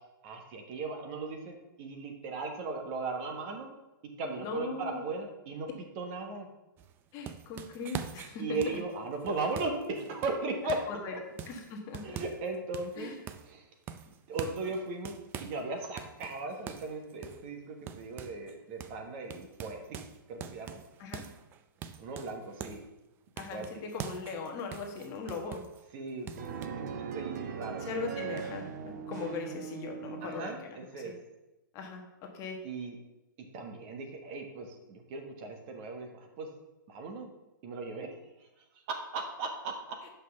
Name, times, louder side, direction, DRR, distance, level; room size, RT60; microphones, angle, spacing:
voice 1, 0.2-3.7 4.2-6.5 8.4-10.8 12.0-13.1 13.5-13.7 14.1-20.0 20.3-20.8 22.0-22.8 23.5-23.7 25.9-27.8 30.2-31.2 32.6-33.0 33.5-36.5 36.9-37.3 37.6-38.1 38.4-38.5 38.9-40.0, right 3 dB, 35° right, 3 dB, 1.3 m, -37 dB
voice 2, 4.4-5.0 7.1-8.6 10.9-11.2 11.4-12.2 13.0-13.2 21.0-21.2 23.4-25.6 27.8-30.6 31.0-31.1 31.7-32.0 32.3-32.6, left 4 dB, 30° left, 2 dB, 1.3 m, -39 dB
sound 1, 6.8-11.0 11.4-12.5 12.7-13.6 13.9-15.6 16.0-18.5 18.8-19.0 19.3-22.9 23.4-25.8 26.3-26.7, right 8 dB, 20° right, 0.4 m, -44 dB
sound 2, 26.4-30.5, right 7 dB, 55° right, 0.8 m, -39 dB
6.1 x 5.5 x 5.8 m, 0.98 s
hypercardioid pair, 145°, 11 cm